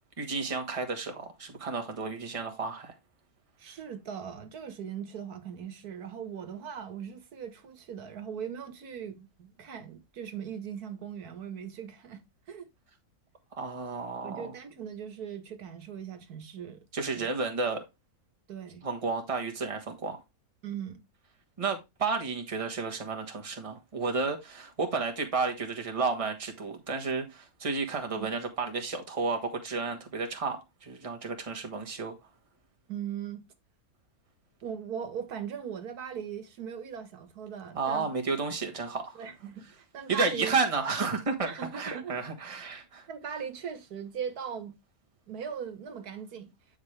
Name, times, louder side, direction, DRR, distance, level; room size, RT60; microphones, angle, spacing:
voice 1, 0.2-2.9 13.5-14.5 16.9-17.9 18.8-20.2 21.6-32.1 37.7-39.2 40.1-43.1, right 4 dB, 25° right, 1.4 m, -32 dB
voice 2, 3.6-12.7 14.2-16.8 17.2-17.3 18.5-18.9 20.6-21.0 28.2-28.3 32.9-33.4 34.6-38.1 39.1-40.5 41.4-42.2 43.1-44.7 45.3-46.5, right 8 dB, 80° right, 1.7 m, -39 dB
9.2 x 5.1 x 3.3 m
omnidirectional pair, 1.6 m